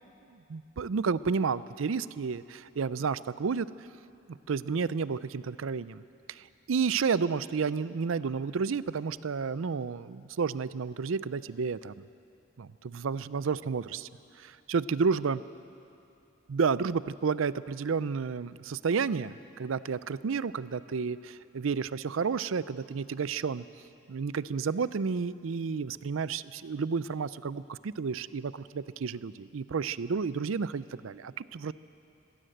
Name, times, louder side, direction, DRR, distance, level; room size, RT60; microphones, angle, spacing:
voice 1, 0.5-3.7 4.3-6.0 6.3-11.9 12.6-14.1 14.4-15.4 16.5-23.6 24.1-31.7, right 5 dB, 75° right, 17 dB, 0.5 m, -31 dB
20.5 x 16.5 x 7.9 m, 2.7 s
head